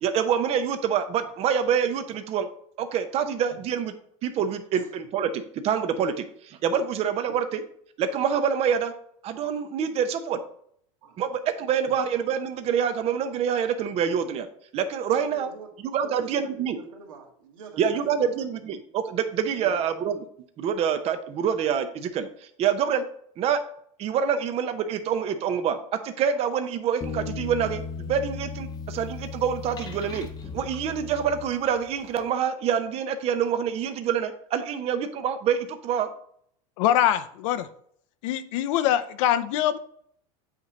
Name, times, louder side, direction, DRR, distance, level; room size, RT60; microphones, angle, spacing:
voice 1, 0.0-2.5 2.8-3.9 4.2-7.6 8.0-8.9 9.2-10.4 11.2-14.5 14.7-15.5 15.8-16.8 17.8-20.2 20.6-22.3 22.6-23.0 23.4-23.6 24.0-30.3 30.5-36.1, right 7 dB, 35° right, 9 dB, 0.7 m, -26 dB
voice 2, 3.2-3.6 4.7-4.9 7.3-7.4 11.0-11.2 15.1-18.6 19.6-19.8, right 5 dB, 75° right, 2 dB, 1.7 m, -46 dB
sound 1, 27.0-31.9, left 5 dB, 25° left, 0.9 m, -36 dB
voice 3, 36.8-37.7 38.2-39.8, left 11 dB, 65° left, 11 dB, 0.6 m, -23 dB
8.2 x 3.1 x 5.0 m, 0.64 s
supercardioid pair, 125°, 17 cm